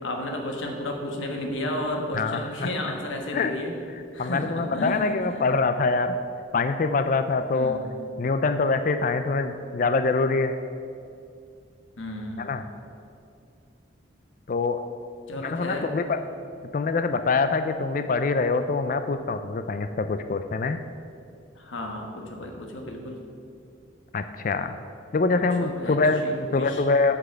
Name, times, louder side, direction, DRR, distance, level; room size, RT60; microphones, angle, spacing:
voice 1, 0.0-3.7 4.1-5.1 7.5-7.9 12.0-12.5 15.3-15.9 21.6-23.2 25.6-26.8, left 1 dB, 80° left, 2 dB, 1.3 m, -32 dB
voice 2, 2.2-2.7 3.3-3.5 4.2-6.2 6.5-7.8 8.2-10.6 12.4-12.6 14.5-14.8 15.4-16.2 16.7-20.8 24.1-24.7 25.1-26.2 26.5-27.2, left 3 dB, 45° left, 9 dB, 0.4 m, -24 dB
8.2 x 6.0 x 6.9 m, 2.4 s
head